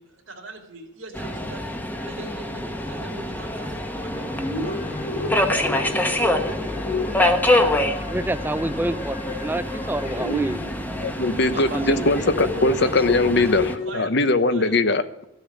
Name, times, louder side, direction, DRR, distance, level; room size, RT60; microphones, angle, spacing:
voice 1, 0.0-1.7 2.0-4.3 4.6-5.9 6.5-6.8 11.2-12.1 12.7-12.8 13.3-14.7, right 3 dB, 85° right, 1 dB, 2.5 m, -42 dB
Subway metro underground, 1.1-13.8, left 1 dB, 10° left, 1.0 m, -26 dB
sound 1, 4.1-11.1 11.4-13.9, left 2 dB, 45° left, 3.5 m, -32 dB
voice 2, 8.0-10.7 11.7-12.5 12.8-12.9, right 1 dB, 10° right, 12 dB, 0.6 m, -29 dB
voice 3, 11.0-15.3, left 2 dB, 60° left, 12 dB, 0.9 m, -21 dB
14.5 x 7.0 x 9.6 m, 0.88 s
head